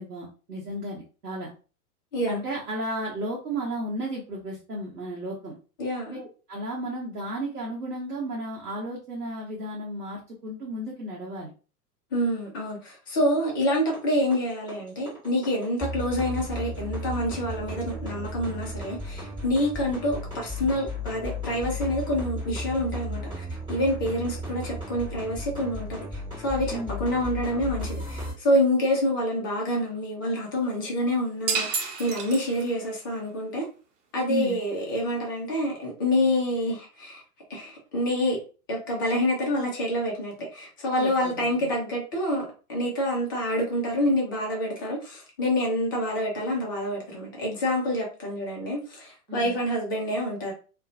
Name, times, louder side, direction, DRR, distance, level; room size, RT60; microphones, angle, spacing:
voice 1, 0.0-1.5 2.3-5.5 6.1-11.5 26.7-27.0 34.3-34.6 41.0-41.7 49.3-49.5, right 1 dB, 85° right, 0.8 m, -34 dB
voice 2, 5.8-6.2 12.1-26.0 26.4-33.7 34.1-37.2 37.5-38.4 38.7-50.5, left 1 dB, 15° left, 0.3 m, -27 dB
sound 1, 13.6-28.3, left 1 dB, 10° right, 1.1 m, -35 dB
sound 2, 31.5-32.9, right 5 dB, 50° right, 0.8 m, -30 dB
2.4 x 2.1 x 2.6 m
figure-of-eight pair, 95°, 46 cm